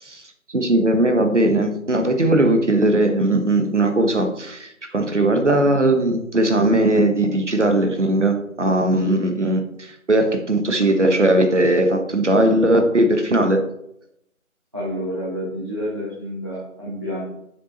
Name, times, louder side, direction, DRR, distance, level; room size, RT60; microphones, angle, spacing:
voice 1, 0.0-13.6, right 1 dB, 55° right, 6 dB, 1.3 m, -19 dB
voice 2, 14.7-17.2, equal, 15° right, -9 dB, 1.3 m, -29 dB
7.3 x 6.7 x 4.2 m, 0.78 s
figure-of-eight pair, 165°, 42 cm